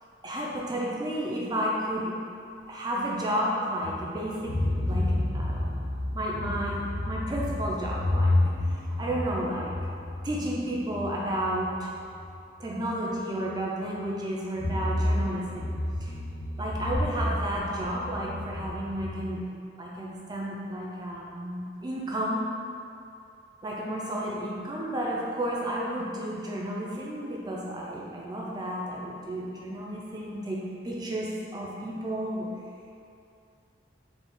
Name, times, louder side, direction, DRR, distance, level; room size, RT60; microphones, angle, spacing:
voice 1, 0.2-2.2 2.7-5.7 6.1-9.7 10.2-12.0 12.6-16.1 16.6-19.5 19.8-22.5 23.6-32.5, right 1 dB, 20° right, -3 dB, 0.5 m, -32 dB
sound 1, 3.8-12.4 12.8-12.9 14.6-19.2, left 1 dB, 85° left, 0.6 m, -30 dB
4.0 x 2.4 x 3.7 m, 2.5 s
head